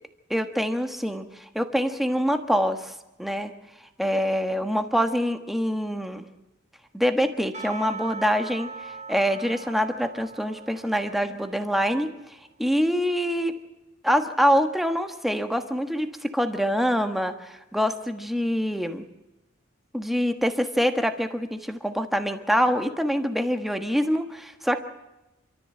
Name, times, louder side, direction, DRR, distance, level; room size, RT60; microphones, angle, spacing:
voice 1, 0.3-2.9 3.2-3.5 4.0-6.2 6.9-12.1 12.6-13.6 14.0-19.0 19.9-24.8, equal, ahead, 7 dB, 1.3 m, -25 dB
Percussion / Church bell, 7.5-12.0, right 4 dB, 35° right, 3.3 m, -40 dB
27.0 x 13.5 x 7.8 m, 0.99 s
head